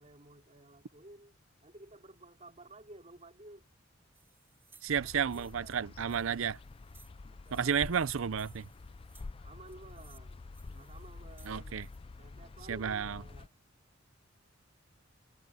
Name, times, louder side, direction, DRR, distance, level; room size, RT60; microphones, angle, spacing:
voice 1, 0.0-1.4 1.6-3.7 4.9-6.5 7.3-8.0 9.4-11.8 12.2-13.5, right 2 dB, 35° right, 3.2 m, -54 dB
sound 1, 4.1-12.0, right 4 dB, 10° right, 4.0 m, -64 dB
voice 2, 4.8-6.6 7.5-8.7 11.5-11.9 12.7-13.2, right 7 dB, 80° right, 0.6 m, -32 dB
sound 2, 4.9-13.5, left 3 dB, 25° left, 0.3 m, -48 dB
head